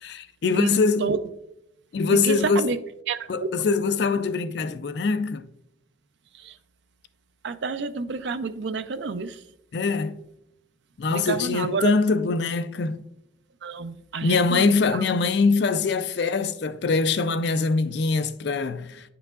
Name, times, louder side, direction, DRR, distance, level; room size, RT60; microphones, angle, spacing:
voice 1, 0.0-1.0 1.9-2.7 3.3-5.4 9.7-10.2 11.0-13.0 14.2-19.0, left 4 dB, 55° left, 0.4 m, -23 dB
voice 2, 2.1-2.8 3.1-3.5 6.3-6.6 7.4-9.4 11.1-11.9 13.6-15.0, right 5 dB, 65° right, 0.4 m, -29 dB
9.6 x 5.9 x 2.4 m
head